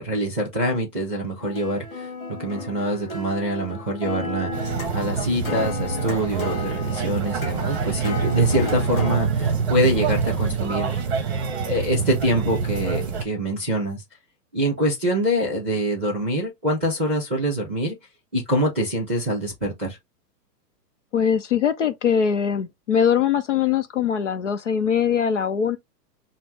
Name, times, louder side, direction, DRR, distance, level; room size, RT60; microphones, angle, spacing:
voice 1, 0.0-2.1 2.4-11.0 11.6-14.0 14.5-18.0 18.3-20.0, equal, 10° right, 0.5 m, -25 dB
sound 1, 1.4-9.2, left 3 dB, 30° left, 1.9 m, -34 dB
sound 2, 4.5-13.2, right 5 dB, 40° right, 0.8 m, -26 dB
voice 2, 21.1-25.8, left 7 dB, 50° left, 0.5 m, -22 dB
5.8 x 2.1 x 3.2 m
hypercardioid pair, 175°, 49 cm